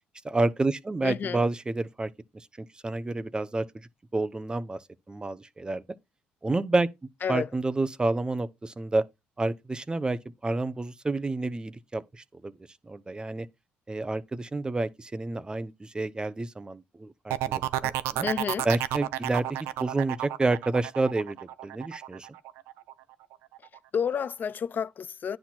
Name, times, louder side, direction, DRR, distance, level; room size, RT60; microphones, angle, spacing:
voice 1, 0.2-3.7 4.1-5.8 6.4-6.9 7.3-9.0 9.4-12.5 12.8-13.5 13.9-18.3 18.6-21.4 21.6-22.3, right 2 dB, 20° right, 0.7 m, -29 dB
voice 2, 1.0-1.4 7.2-7.5 18.2-18.7 23.9-25.4, left 7 dB, 45° left, 0.5 m, -30 dB
sound 1, 17.3-22.9 23.3-23.8, right 14 dB, 80° right, 0.5 m, -31 dB
10.0 x 4.2 x 4.3 m
supercardioid pair, 70°, 4 cm